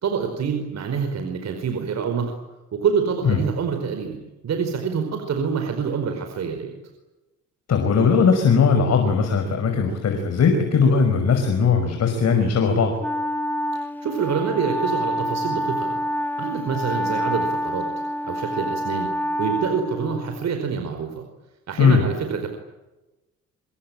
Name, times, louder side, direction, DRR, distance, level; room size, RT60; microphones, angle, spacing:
voice 1, 0.0-2.3 2.7-4.2 4.4-6.7 14.0-16.0 16.4-17.9 18.2-19.1 19.4-21.1 21.7-22.5, right 6 dB, 60° right, 5 dB, 5.0 m, -26 dB
voice 2, 7.7-12.9 21.8-22.1, left 5 dB, 60° left, 5 dB, 5.6 m, -19 dB
Wind instrument woodwind instrument, 13.0-20.5, equal, 5° left, 1.7 m, -27 dB
27.0 x 23.0 x 9.0 m, 1.0 s
cardioid pair, 90°, 30 cm